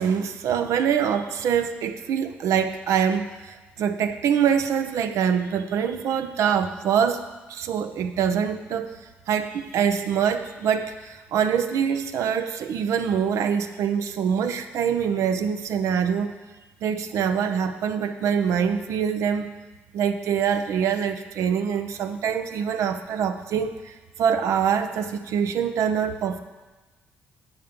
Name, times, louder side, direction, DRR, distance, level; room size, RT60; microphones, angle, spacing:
voice 1, 0.0-9.0 9.3-16.4 16.8-19.5 19.9-26.4, right 7 dB, 70° right, 8 dB, 0.6 m, -24 dB
9.0 x 5.7 x 5.2 m, 1.2 s
supercardioid pair, 65°, 5 cm